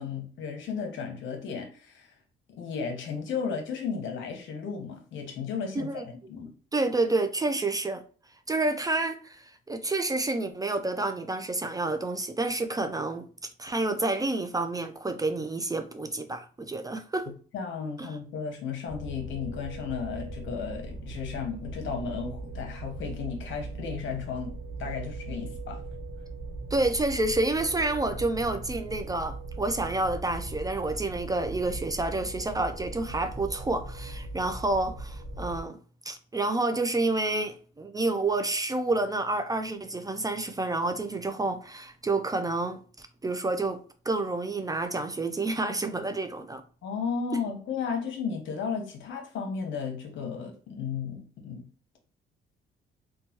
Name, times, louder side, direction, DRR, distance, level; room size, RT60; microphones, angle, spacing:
voice 1, 0.0-2.1 2.6-6.5 17.5-25.8 46.8-51.7, left 6 dB, 75° left, 0.9 m, -34 dB
voice 2, 5.8-6.1 6.7-8.0 8.5-13.2 13.6-17.3 18.0-18.1 26.7-35.8 36.1-43.8 44.1-46.6 47.3-47.4, right 2 dB, 20° right, 0.3 m, -29 dB
sound 1, 18.9-35.6, right 2 dB, 40° right, 0.8 m, -39 dB
3.0 x 2.2 x 2.8 m
cardioid pair, 90°, 20 cm